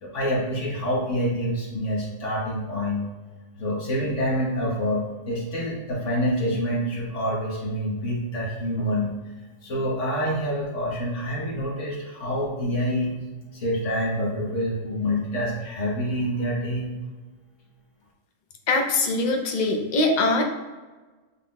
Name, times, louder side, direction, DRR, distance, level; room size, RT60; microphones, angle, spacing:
voice 1, 0.0-3.1 3.5-9.1 9.6-13.1 13.5-16.9, equal, 65° left, -3 dB, 1.5 m, -27 dB
voice 2, 18.7-20.4, left 2 dB, 50° left, 3 dB, 0.6 m, -22 dB
5.7 x 4.1 x 2.2 m, 1.3 s
omnidirectional pair, 1.4 m